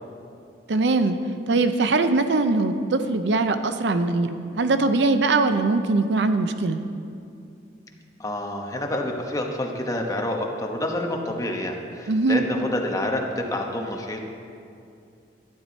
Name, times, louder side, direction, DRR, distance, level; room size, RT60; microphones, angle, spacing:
voice 1, 0.7-1.2 1.5-6.8 12.1-12.4, right 3 dB, 75° right, 9 dB, 0.6 m, -21 dB
voice 2, 8.2-14.2, left 1 dB, 20° left, 1 dB, 1.0 m, -28 dB
12.0 x 9.8 x 4.1 m, 2.5 s
head